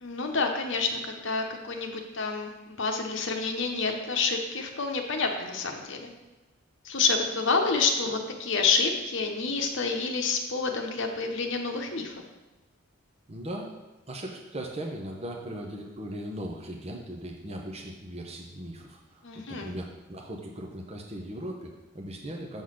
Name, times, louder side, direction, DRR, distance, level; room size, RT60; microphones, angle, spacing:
voice 1, 0.0-6.1 6.8-12.2 19.2-19.7, left 4 dB, 60° left, 3 dB, 0.9 m, -28 dB
voice 2, 13.3-13.7 14.1-19.2 19.5-22.6, right 1 dB, 30° right, 0 dB, 0.8 m, -38 dB
7.1 x 4.0 x 6.4 m, 1.1 s
head